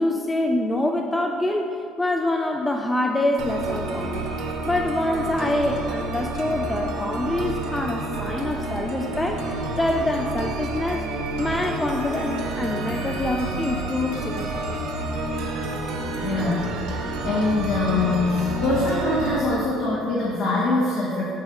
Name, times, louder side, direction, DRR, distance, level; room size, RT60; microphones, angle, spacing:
voice 1, 0.0-4.3 4.6-9.4 9.8-11.1 11.4-15.0, left 1 dB, 15° left, 3 dB, 0.4 m, -25 dB
sound 1, 3.4-19.4, right 2 dB, 75° right, 0.9 m, -29 dB
voice 2, 16.2-21.3, left 2 dB, 65° left, -6 dB, 1.1 m, -24 dB
7.2 x 3.7 x 4.8 m, 2.6 s
supercardioid pair, 95°, 0 cm